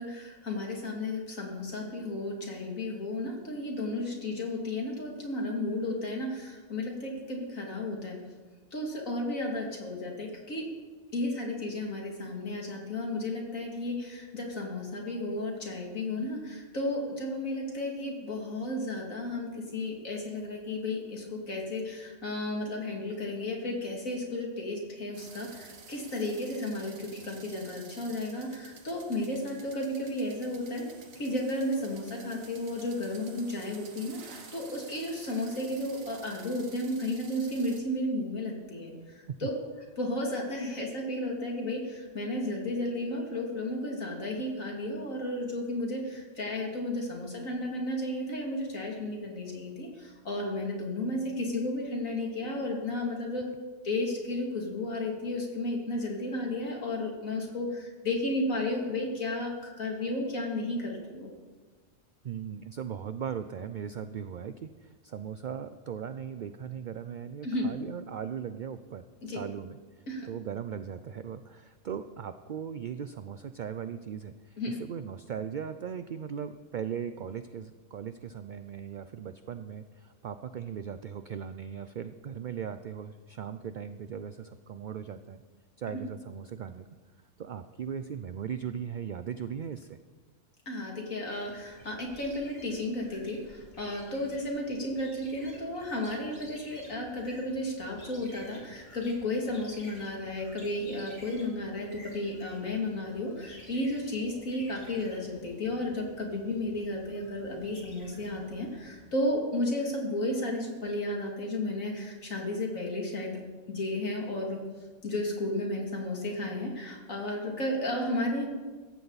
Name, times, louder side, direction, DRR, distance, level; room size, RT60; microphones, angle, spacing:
voice 1, 0.0-8.2 8.7-10.7 11.1-30.9 31.2-39.5 40.0-53.4 53.8-61.3 67.4-67.7 69.2-69.4 70.1-70.3 74.6-74.7 85.9-86.0 90.7-113.4 113.7-114.6 115.0-118.5, left 1 dB, 85° left, 0 dB, 3.0 m, -33 dB
sound 1, 25.1-37.8, right 5 dB, 85° right, 1.7 m, -51 dB
voice 2, 62.2-69.0 69.3-85.4 85.8-86.9 87.4-90.0, right 8 dB, 60° right, 10 dB, 0.5 m, -38 dB
sound 2, 91.2-109.2, left 1 dB, 50° left, 3.1 m, -53 dB
16.0 x 15.0 x 4.1 m, 1.4 s
omnidirectional pair, 1.4 m